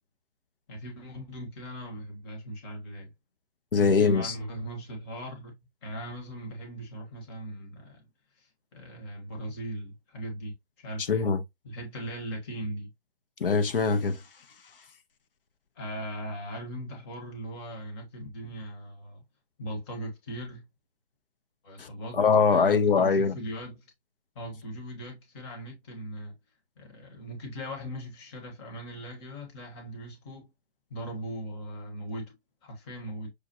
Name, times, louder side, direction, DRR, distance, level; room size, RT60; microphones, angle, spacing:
voice 1, 0.7-3.1 3.7-5.5 5.8-8.1 8.3-11.3 11.6-12.9 15.8-19.2 19.6-20.6 21.6-22.2 22.5-23.8 24.3-26.3 26.8-30.5 30.9-32.3 32.6-33.3, right 1 dB, 25° left, 1.3 m, -39 dB
voice 2, 3.7-4.3 11.1-11.4 13.4-14.2 21.8-21.9 22.1-23.3, left 5 dB, 60° left, 0.8 m, -22 dB
6.6 x 2.3 x 2.8 m
hypercardioid pair, 145°, 32 cm